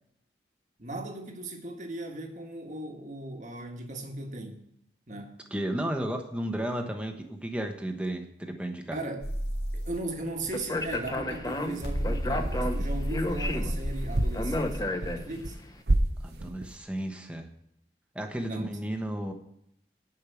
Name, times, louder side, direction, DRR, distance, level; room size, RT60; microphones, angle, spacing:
voice 1, 0.8-4.6 5.1-5.3 8.9-9.2 9.7-15.6 18.4-18.7, right 2 dB, 45° right, 3 dB, 1.6 m, -37 dB
voice 2, 5.5-9.0 16.2-17.5 18.1-19.3, right 1 dB, 5° right, 4 dB, 1.1 m, -33 dB
sound 1, 9.2-14.8, equal, 75° left, 2.1 m, -33 dB
Speech, 10.5-15.6, left 1 dB, 20° left, 0.8 m, -32 dB
sound 2, 11.7-12.1 12.4-13.8 14.1-15.6 15.9-16.8, right 1 dB, 70° right, 0.9 m, -30 dB
10.0 x 5.5 x 8.4 m, 0.75 s
head